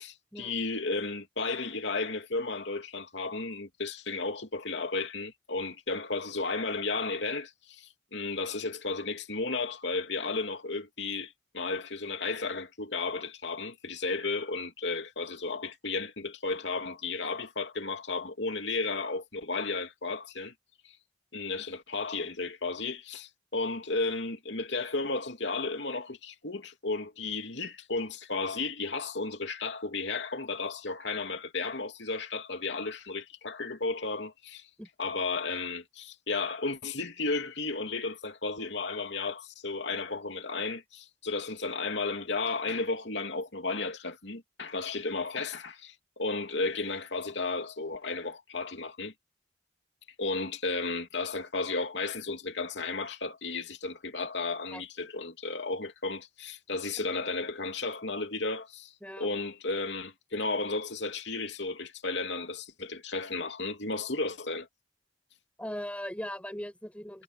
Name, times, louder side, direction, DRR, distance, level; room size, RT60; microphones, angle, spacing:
voice 1, 0.0-20.5 21.3-34.6 35.0-49.1 50.2-64.7, left 3 dB, 75° left, 2.9 m, -33 dB
voice 2, 65.6-67.2, equal, 5° left, 7.2 m, -39 dB
head